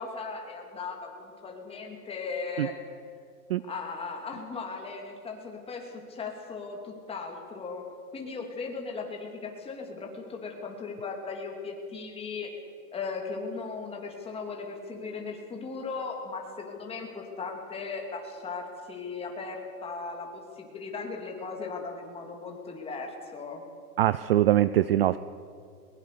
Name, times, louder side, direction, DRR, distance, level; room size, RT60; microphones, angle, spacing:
voice 1, 0.0-2.7 3.6-7.8 8.1-12.5 12.9-23.6, left 4 dB, 10° left, 1 dB, 2.8 m, -37 dB
voice 2, 24.0-25.2, right 13 dB, 40° right, 16 dB, 0.4 m, -22 dB
21.5 x 21.0 x 6.8 m, 2.4 s
hypercardioid pair, 150°, 46 cm